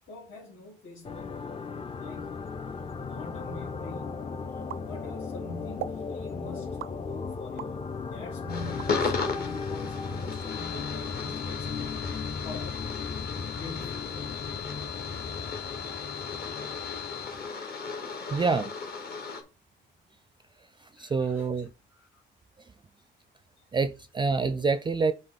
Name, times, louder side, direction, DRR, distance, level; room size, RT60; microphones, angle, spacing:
voice 1, 0.1-1.4 1.9-2.4 3.0-4.2 4.8-12.0 12.4-12.8 13.5-14.2 21.0-22.2 23.6-23.7, left 3 dB, 80° left, 2.6 m, -45 dB
sound 1, 1.0-17.5, left 4 dB, 30° left, 0.5 m, -37 dB
sound 2, 4.7-5.4 5.8-6.1 6.8-7.8 8.3-9.4, right 13 dB, 85° right, 0.4 m, -40 dB
sound 3, 8.5-19.4, left 5 dB, 50° left, 1.6 m, -35 dB
voice 2, 18.3-18.7 21.0-21.7 23.7-25.1, right 4 dB, 25° right, 0.4 m, -26 dB
7.9 x 3.6 x 4.1 m
cardioid pair, 90°, 20 cm